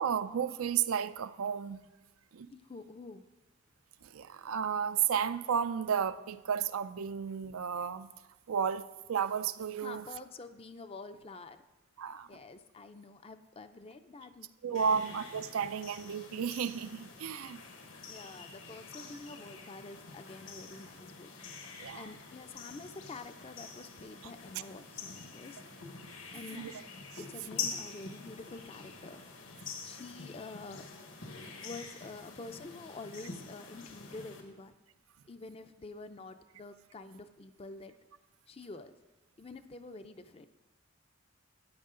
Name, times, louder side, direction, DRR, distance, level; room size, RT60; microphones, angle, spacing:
voice 1, 0.0-1.8 2.3-2.5 4.0-8.1 8.5-10.0 12.0-12.3 14.6-17.6 21.8-22.1 26.5-26.7, right 7 dB, 85° right, 12 dB, 0.5 m, -33 dB
voice 2, 2.5-3.3 9.8-11.6 12.3-15.1 18.1-25.9 26.3-26.8 27.2-29.5 29.8-30.9 31.6-34.8 35.3-38.0 38.5-38.9 39.4-40.5, left 3 dB, 30° left, 9 dB, 0.5 m, -48 dB
sound 1, 14.7-34.4, left 5 dB, 70° left, 1.5 m, -46 dB
14.0 x 9.5 x 3.8 m, 1.1 s
head